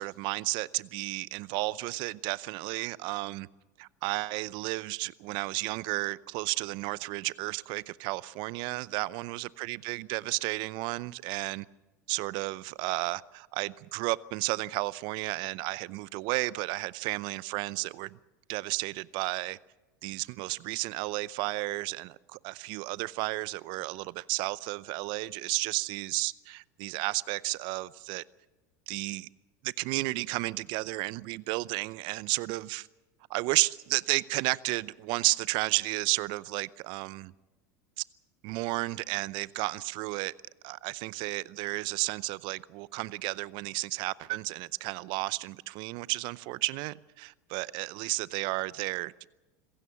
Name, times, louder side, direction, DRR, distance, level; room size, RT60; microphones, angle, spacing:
voice 1, 0.0-3.5 3.8-11.7 12.1-18.2 18.5-19.6 20.0-28.2 28.9-29.3 29.6-32.9 33.3-37.3 38.0-38.1 38.4-40.3 40.6-49.3, right 22 dB, 55° right, 0.6 m, -32 dB
26.5 x 16.0 x 7.0 m
hypercardioid pair, 85°, 10 cm